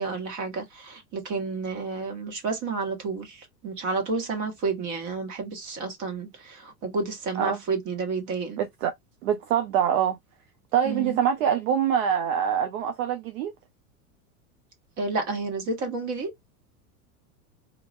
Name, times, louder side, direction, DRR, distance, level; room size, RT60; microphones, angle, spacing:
voice 1, 0.0-8.6 10.8-11.2 15.0-16.3, right 4 dB, 40° right, 1.5 m, -30 dB
voice 2, 8.6-8.9 9.2-10.2 10.7-13.5, right 9 dB, 65° right, 0.7 m, -24 dB
2.9 x 2.4 x 2.5 m
hypercardioid pair, 95°, 45 cm